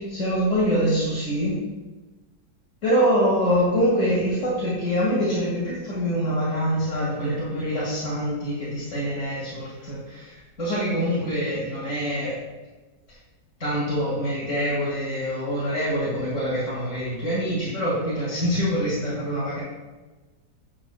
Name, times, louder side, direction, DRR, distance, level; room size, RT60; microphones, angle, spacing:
voice 1, 0.0-1.6 2.8-12.4 13.6-19.6, equal, 45° left, -9 dB, 2.4 m, -25 dB
8.6 x 7.4 x 2.3 m, 1.2 s
omnidirectional pair, 1.9 m